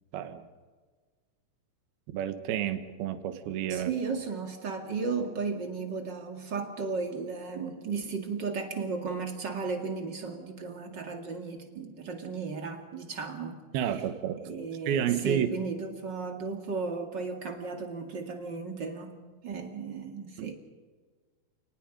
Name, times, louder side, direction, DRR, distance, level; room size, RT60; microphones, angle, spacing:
voice 1, 0.1-0.5 2.1-3.9 13.7-14.4 14.9-15.5 20.4-20.5, right 10 dB, 80° right, 9 dB, 3.1 m, -30 dB
voice 2, 3.7-13.6 14.4-19.2 19.4-20.5, right 4 dB, 35° right, 3 dB, 2.1 m, -35 dB
29.5 x 19.5 x 5.3 m, 1.4 s
omnidirectional pair, 4.4 m